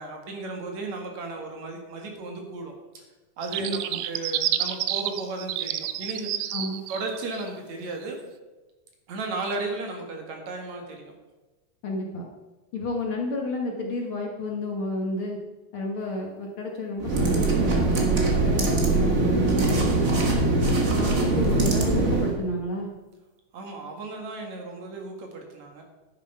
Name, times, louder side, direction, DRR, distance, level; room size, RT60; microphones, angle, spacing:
voice 1, 0.0-3.0 3.4-6.5 6.9-8.2 9.1-11.1 23.5-25.8, right 3 dB, 60° right, 2 dB, 3.1 m, -35 dB
sound 1, 3.4-7.5, right 12 dB, 80° right, 1.6 m, -29 dB
voice 2, 3.6-4.0 6.5-6.8 11.8-12.3 12.7-15.4 15.7-20.5 21.0-22.9, left 1 dB, 55° left, 0 dB, 1.8 m, -31 dB
sound 2, 17.0-22.4, right 2 dB, 35° right, 1.6 m, -22 dB
10.5 x 10.0 x 5.6 m, 1.2 s
omnidirectional pair, 3.6 m